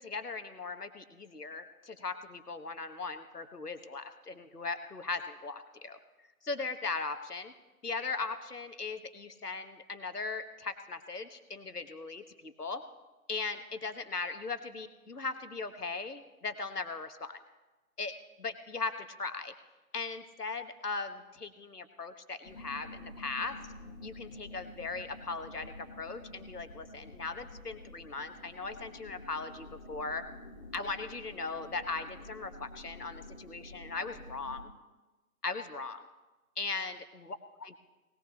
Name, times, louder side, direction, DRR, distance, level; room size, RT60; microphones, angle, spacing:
voice 1, 0.0-6.0 6.4-7.5 7.8-12.8 13.3-17.4 18.0-19.5 19.9-23.6 24.0-30.2 30.7-34.7 35.4-36.0 36.6-37.8, left 4 dB, 80° left, 9 dB, 1.3 m, -38 dB
sound 1, 22.4-34.6, left 2 dB, 30° left, 2.1 m, -49 dB
19.0 x 18.0 x 2.9 m, 1.2 s
figure-of-eight pair, 145°, 46 cm